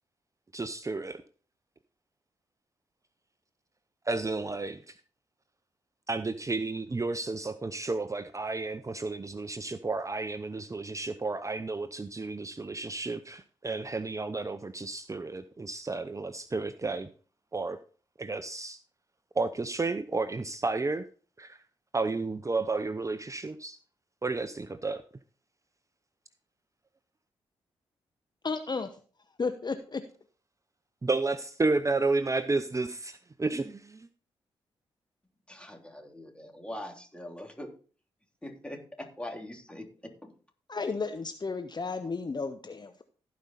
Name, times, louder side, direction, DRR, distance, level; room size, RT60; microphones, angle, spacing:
voice 1, 0.5-1.2 4.1-4.9 6.1-17.1 17.5-17.8 18.2-18.8 19.3-21.0 21.4-21.6 21.9-23.8 24.2-25.0 31.0-34.1, right 3 dB, 25° right, 11 dB, 0.7 m, -32 dB
voice 2, 28.4-28.9 29.4-30.0 40.7-43.0, left 4 dB, 40° left, 9 dB, 0.9 m, -33 dB
voice 3, 35.5-37.7 38.4-40.3, left 1 dB, 10° left, 3 dB, 3.2 m, -42 dB
16.0 x 5.3 x 4.1 m, 0.40 s
hypercardioid pair, 40°, 12 cm